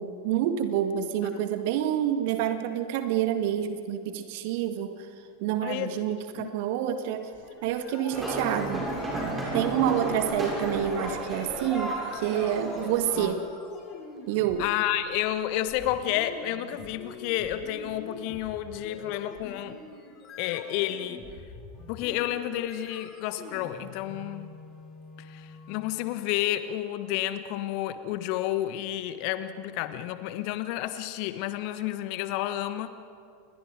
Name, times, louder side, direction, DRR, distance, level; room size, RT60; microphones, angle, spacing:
voice 1, 0.0-4.9 5.4-7.3 7.6-8.9 9.5-13.4 14.3-14.7, right 10 dB, 55° right, 8 dB, 1.8 m, -28 dB
voice 2, 5.6-6.0 6.3-6.5 13.2-13.4 14.6-19.8 20.4-21.2 21.9-24.5 25.2-32.9, left 13 dB, 50° left, 11 dB, 1.3 m, -31 dB
sound 1, 7.2-25.9, left 3 dB, 30° left, 4.7 m, -46 dB
sound 2, 8.1-13.3, right 1 dB, 15° right, 7.2 m, -33 dB
29.0 x 21.5 x 5.1 m, 2.3 s
figure-of-eight pair, 85°, 0 cm